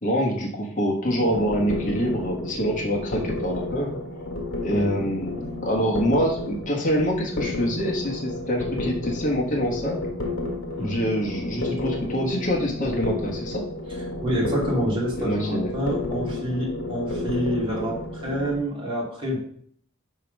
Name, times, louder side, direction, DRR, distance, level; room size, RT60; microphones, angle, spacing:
voice 1, 0.0-3.9 4.6-10.0 10.8-13.6 15.2-15.7, equal, 40° left, -2 dB, 1.4 m, -25 dB
sound 1, 1.1-18.5, left 2 dB, 70° left, 1.4 m, -31 dB
voice 2, 4.6-5.1 10.8-11.0 14.2-19.4, equal, 25° right, -5 dB, 2.6 m, -27 dB
5.4 x 4.8 x 5.3 m, 0.62 s
head